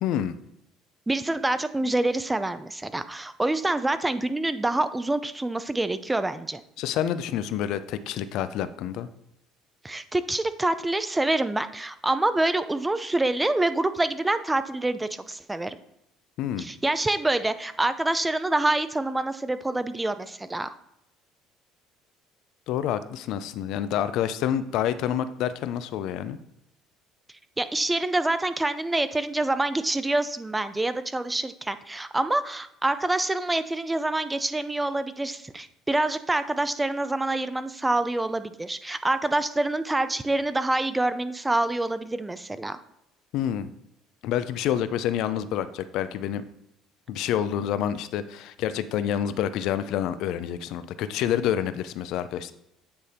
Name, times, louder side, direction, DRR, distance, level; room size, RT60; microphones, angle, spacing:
voice 1, 0.0-0.4 6.8-9.1 16.4-16.7 22.7-26.4 43.3-43.7 44.2-46.4 47.1-52.5, left 10 dB, 70° left, 13 dB, 0.4 m, -28 dB
voice 2, 1.1-6.6 9.8-15.8 16.6-20.7 27.6-42.8, right 2 dB, 15° right, 12 dB, 0.5 m, -26 dB
8.7 x 3.4 x 4.2 m, 0.82 s
supercardioid pair, 90°, 0 cm